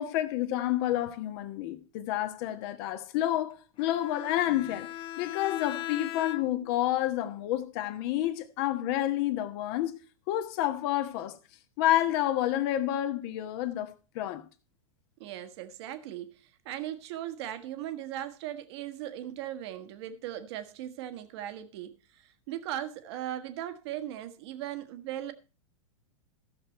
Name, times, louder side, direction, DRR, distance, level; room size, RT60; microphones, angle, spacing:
voice 1, 0.0-4.9 5.2-10.0 10.3-11.4 11.8-14.4, left 13 dB, 50° left, 1.3 m, -29 dB
Bowed string instrument, 3.8-6.8, left 13 dB, 30° left, 0.9 m, -39 dB
voice 2, 15.2-25.3, right 12 dB, 55° right, 1.4 m, -38 dB
15.0 x 6.7 x 4.4 m
figure-of-eight pair, 100°, 17 cm